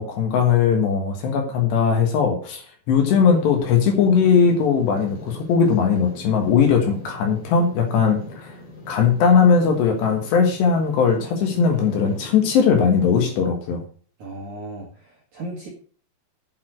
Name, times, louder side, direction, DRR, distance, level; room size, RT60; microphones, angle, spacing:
voice 1, 0.0-8.6 8.9-13.8, left 6 dB, 65° left, 3 dB, 3.3 m, -19 dB
sound 1, 3.0-13.4, left 2 dB, 35° left, 3.3 m, -40 dB
voice 2, 14.2-15.7, right 1 dB, 55° right, -2 dB, 2.3 m, -36 dB
8.5 x 7.1 x 6.2 m, 0.42 s
omnidirectional pair, 5.9 m